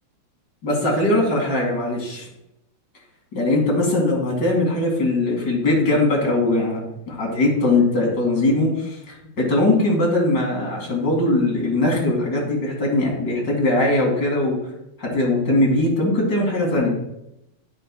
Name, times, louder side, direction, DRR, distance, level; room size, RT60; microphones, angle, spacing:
voice 1, 0.6-2.2 3.3-6.8 7.1-14.6 15.0-17.0, left 2 dB, 35° left, -2 dB, 2.7 m, -20 dB
10.5 x 9.1 x 2.3 m, 0.84 s
omnidirectional pair, 3.4 m